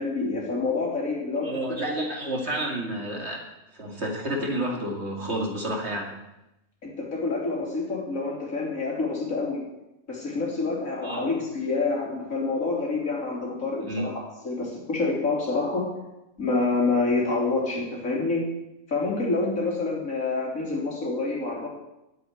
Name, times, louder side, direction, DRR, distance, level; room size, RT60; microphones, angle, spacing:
voice 1, 0.0-1.6 6.8-9.6 10.1-14.1 14.4-15.9 16.4-18.4 18.9-21.7, left 3 dB, 75° left, -2 dB, 3.6 m, -27 dB
voice 2, 1.4-3.4 3.7-6.1 11.0-11.2 13.8-14.0, right 1 dB, 50° right, -1 dB, 2.8 m, -30 dB
10.5 x 7.9 x 9.5 m, 0.93 s
omnidirectional pair, 1.4 m